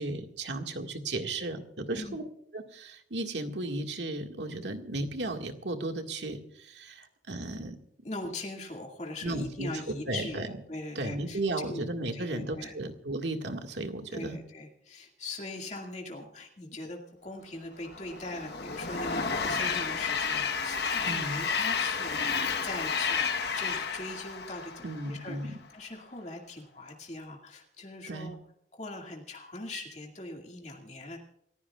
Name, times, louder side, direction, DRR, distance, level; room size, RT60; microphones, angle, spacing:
voice 1, 0.0-2.2 2.5-7.8 9.2-9.7 10.1-10.5 11.0-14.4 21.1-21.5 24.8-25.5 28.1-28.3, right 2 dB, 80° right, 4 dB, 1.9 m, -35 dB
voice 2, 8.0-11.8 12.1-12.7 14.1-23.2 23.5-28.4 28.8-31.2, left 2 dB, 40° left, 0 dB, 2.1 m, -41 dB
Train, 17.9-25.3, left 5 dB, 65° left, 1.2 m, -31 dB
28.5 x 15.0 x 2.4 m, 0.76 s
head